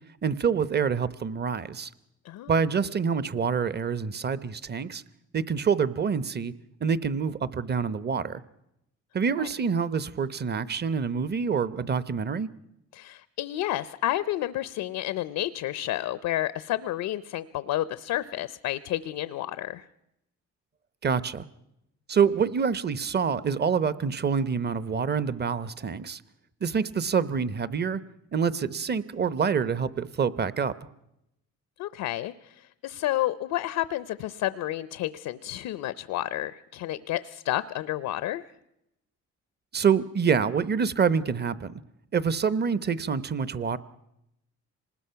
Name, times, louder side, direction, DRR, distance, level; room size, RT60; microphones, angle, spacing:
voice 1, 0.2-1.9 2.5-5.0 5.3-6.5 6.8-8.4 9.1-12.5 21.0-21.4 22.1-26.2 26.6-28.0 28.3-30.7 39.7-41.7 42.1-43.8, right 6 dB, 35° right, 16 dB, 0.9 m, -26 dB
voice 2, 12.9-19.8 31.8-38.4, left 14 dB, 85° left, 15 dB, 0.7 m, -30 dB
25.5 x 20.0 x 5.8 m, 0.84 s
cardioid pair, 90°, 30 cm